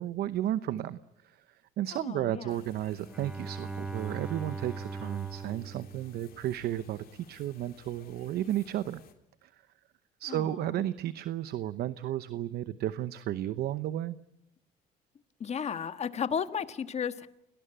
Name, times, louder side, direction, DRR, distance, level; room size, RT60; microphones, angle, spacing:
voice 1, 0.0-9.0 9.4-9.5 10.2-14.2, right 12 dB, 70° right, 14 dB, 0.9 m, -33 dB
voice 2, 1.9-2.6 10.3-10.8 15.4-17.3, left 7 dB, 40° left, 11 dB, 1.5 m, -34 dB
sound 1, 2.5-9.1, left 8 dB, 60° left, 3.4 m, -57 dB
Bowed string instrument, 3.1-6.8, right 4 dB, 5° right, 1.3 m, -40 dB
29.0 x 19.0 x 8.9 m, 0.81 s
cardioid pair, 110°, 17 cm